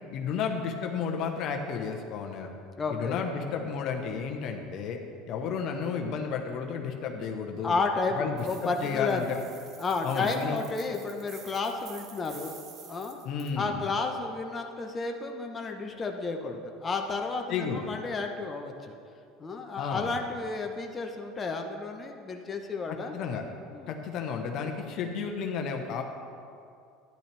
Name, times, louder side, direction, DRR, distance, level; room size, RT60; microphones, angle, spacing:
voice 1, 0.1-2.5 2.9-5.0 5.3-7.8 8.1-9.4 10.0-10.6 13.2-13.8 17.5-17.9 19.8-20.1 23.1-23.4 23.9-26.0, left 6 dB, 55° left, 3 dB, 1.1 m, -32 dB
voice 2, 2.8-3.2 7.6-9.2 9.8-12.6 12.9-13.2 13.5-19.0 19.4-23.1 23.7-23.9, left 3 dB, 25° left, 2 dB, 1.1 m, -32 dB
sound 1, 8.4-13.5, right 7 dB, 50° right, 1.3 m, -50 dB
12.0 x 10.5 x 3.4 m, 2.4 s
hypercardioid pair, 85°, 0 cm